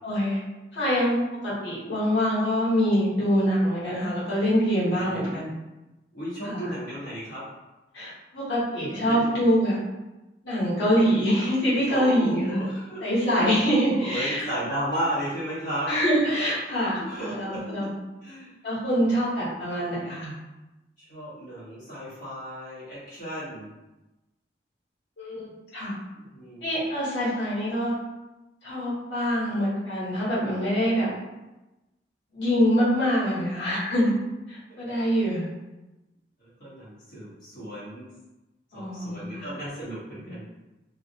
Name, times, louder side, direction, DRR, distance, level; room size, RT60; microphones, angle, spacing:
voice 1, 0.0-0.4 0.7-5.5 6.4-6.7 7.9-9.8 10.4-12.6 13.0-14.4 15.9-17.0 17.3-17.9 18.6-20.3 25.2-26.0 26.6-27.9 28.6-31.1 32.3-34.1 34.5-35.4 38.7-39.5, equal, 85° left, -9 dB, 1.0 m, -25 dB
voice 2, 5.0-5.4 6.1-7.4 9.1-9.4 11.9-13.6 14.0-15.9 17.0-17.9 18.2-18.6 19.0-19.1 21.0-23.7 26.1-26.7 34.7-34.9 36.4-38.1 38.7-40.4, right 1 dB, 50° left, -10 dB, 1.0 m, -34 dB
2.3 x 2.1 x 2.7 m, 1.0 s
head